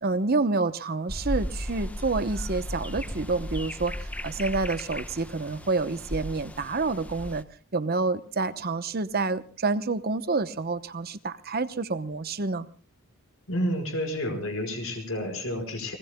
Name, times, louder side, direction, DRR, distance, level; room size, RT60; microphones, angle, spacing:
voice 1, 0.0-7.4 7.7-12.7, right 3 dB, 45° right, 12 dB, 0.9 m, -28 dB
sound 1, 1.1-7.4, equal, 5° left, 1.0 m, -35 dB
voice 2, 13.5-16.0, equal, 65° left, 6 dB, 5.1 m, -30 dB
29.5 x 20.0 x 2.3 m, 0.36 s
head